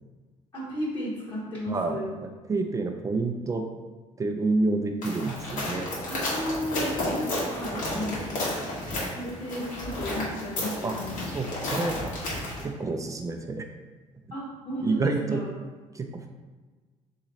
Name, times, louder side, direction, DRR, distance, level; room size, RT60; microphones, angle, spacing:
voice 1, 0.5-2.1 6.1-8.3 9.1-11.2 14.3-15.5, equal, 40° left, -9 dB, 1.3 m, -34 dB
voice 2, 1.7-2.0 2.4-3.6 4.2-5.9 7.7-8.1 10.8-11.0 11.3-12.0 12.6-13.6 14.8-15.4 15.9-16.3, right 3 dB, 25° right, 4 dB, 0.4 m, -28 dB
sound 1, 5.0-12.6, left 1 dB, 85° left, 1.5 m, -32 dB
3.7 x 3.1 x 4.0 m, 1.3 s
cardioid pair, 120°, 13 cm